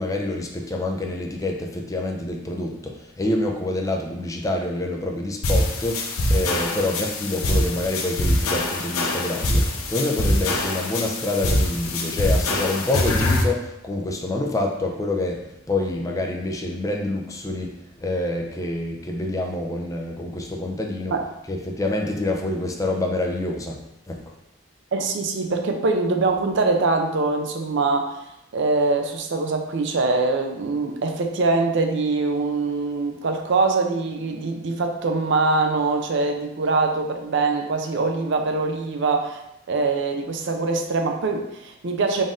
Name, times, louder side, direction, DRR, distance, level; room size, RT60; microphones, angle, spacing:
voice 1, 0.0-17.7 18.0-21.2 21.5-23.8 24.1-24.2, left 2 dB, 15° left, 1 dB, 0.4 m, -27 dB
sound 1, 5.4-13.4, left 1 dB, 85° left, 0.6 m, -23 dB
voice 2, 24.9-28.2 28.5-39.4 39.7-42.2, right 3 dB, 60° right, 4 dB, 0.5 m, -23 dB
3.9 x 2.5 x 3.6 m, 0.88 s
head